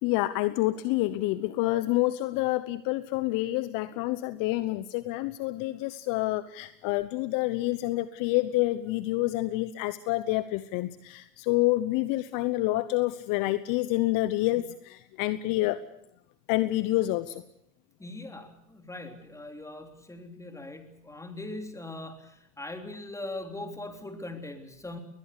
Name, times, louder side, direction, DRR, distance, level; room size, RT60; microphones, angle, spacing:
voice 1, 0.0-15.8 16.5-17.4, left 17 dB, 40° left, 15 dB, 1.0 m, -28 dB
voice 2, 18.0-25.0, left 2 dB, 5° left, 6 dB, 3.4 m, -40 dB
21.5 x 20.5 x 8.3 m, 0.78 s
hypercardioid pair, 115°, 49 cm